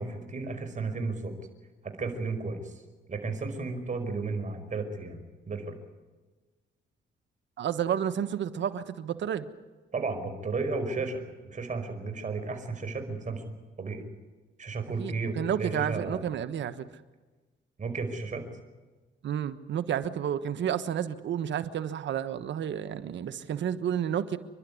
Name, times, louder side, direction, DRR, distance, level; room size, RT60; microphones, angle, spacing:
voice 1, 0.0-1.3 1.8-2.7 3.1-5.7 9.9-13.4 13.8-14.0 14.6-16.2 17.8-18.5, right 3 dB, 40° right, 6 dB, 5.2 m, -33 dB
voice 2, 7.6-9.5 15.0-16.8 19.2-24.4, right 9 dB, 65° right, 11 dB, 1.3 m, -31 dB
29.0 x 12.0 x 9.7 m, 1.3 s
cardioid pair, 90°, 20 cm